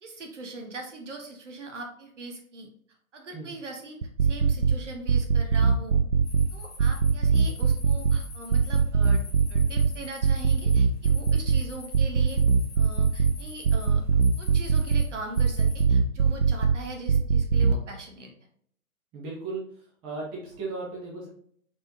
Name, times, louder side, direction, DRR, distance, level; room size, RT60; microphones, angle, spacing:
voice 1, 0.0-2.7 3.1-6.0 6.5-9.2 9.5-12.4 12.8-14.0 14.4-18.3, right 2 dB, 55° right, 2 dB, 1.3 m, -41 dB
sound 1, 4.0-4.7 5.1-6.5 6.8-8.2 8.5-9.9 10.2-11.6 11.9-13.3 13.6-15.0 15.4-16.7 17.1-17.7, right 6 dB, 75° right, 0.6 m, -21 dB
sound 2, 6.2-15.8, left 4 dB, 20° left, 0.9 m, -47 dB
voice 2, 19.1-21.3, right 3 dB, 10° right, -5 dB, 0.8 m, -36 dB
4.4 x 4.3 x 2.7 m, 0.64 s
figure-of-eight pair, 125°, 43 cm